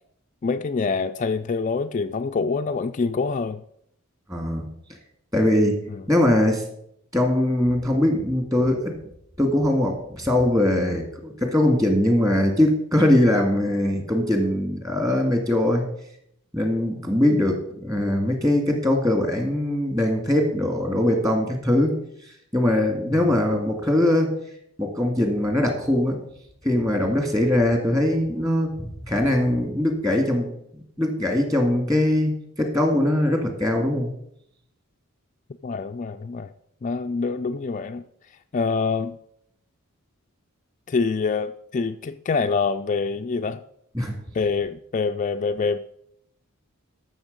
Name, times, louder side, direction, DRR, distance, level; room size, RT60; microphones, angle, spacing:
voice 1, 0.4-3.6 5.9-6.0 23.1-23.4 35.6-36.5 36.8-38.0 38.5-39.2 40.9-43.6 44.3-45.8, left 4 dB, 35° left, 0.3 m, -25 dB
voice 2, 4.3-4.6 5.3-6.6 7.1-9.0 9.4-15.8 16.5-21.9 22.5-24.3 24.8-26.2 26.6-30.5 31.0-34.1 43.9-44.2, left 1 dB, 15° right, 1.9 m, -21 dB
13.5 x 6.4 x 5.2 m
head